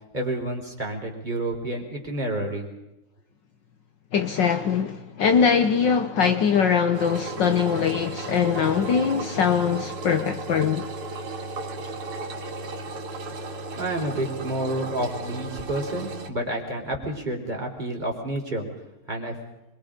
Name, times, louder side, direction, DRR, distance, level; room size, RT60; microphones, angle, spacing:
voice 1, 0.1-2.7 13.8-18.7 19.1-19.3, right 1 dB, 20° right, 4.5 m, -29 dB
voice 2, 4.1-10.9, left 6 dB, 60° left, 1.5 m, -22 dB
Engine, 6.9-16.3, right 2 dB, 85° right, 2.9 m, -35 dB
26.0 x 23.5 x 5.2 m
omnidirectional pair, 2.4 m